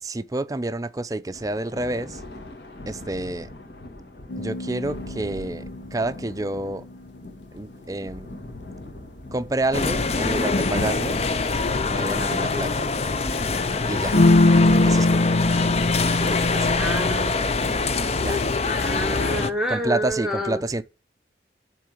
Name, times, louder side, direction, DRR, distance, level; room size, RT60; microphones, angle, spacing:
voice 1, 0.0-2.2 2.9-3.5 4.4-6.9 7.5-8.3 9.3-11.2 11.9-12.9 13.9-14.2 14.8-15.3 16.1-16.8 18.2-18.4 19.7-20.8, right 2 dB, 20° right, 0.5 m, -29 dB
Thunder, 1.3-19.0, left 1 dB, 60° left, 2.1 m, -43 dB
sound 1, 4.3-6.7 9.7-9.8 10.5-11.1 11.7-12.6 14.1-17.2, left 2 dB, 90° left, 0.9 m, -22 dB
sound 2, 9.7-19.5, left 3 dB, 35° left, 0.6 m, -24 dB
voice 2, 16.8-17.5 18.7-20.6, equal, 5° right, 1.1 m, -28 dB
11.5 x 3.9 x 7.8 m
head